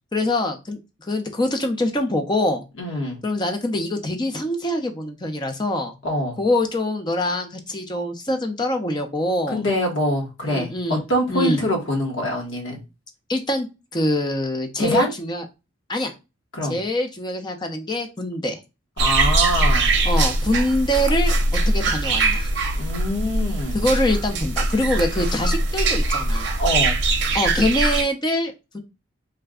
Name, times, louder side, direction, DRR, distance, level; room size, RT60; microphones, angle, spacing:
voice 1, 0.1-2.6 3.2-5.9 6.4-9.6 10.4-11.0 11.3-11.6 13.3-13.7 13.9-15.4 15.9-16.1 16.7-18.6 20.0-21.3 21.7-22.5 23.7-26.6 27.3-28.8, left 1 dB, 20° left, 0.5 m, -24 dB
voice 2, 2.8-3.2 6.0-6.4 9.5-12.8 14.8-15.1 16.5-16.7 19.0-19.9 22.8-23.8 26.6-27.0, equal, 70° left, 1.2 m, -24 dB
sound 1, 19.0-28.0, right 2 dB, 55° right, 0.6 m, -21 dB
3.3 x 2.2 x 3.5 m
head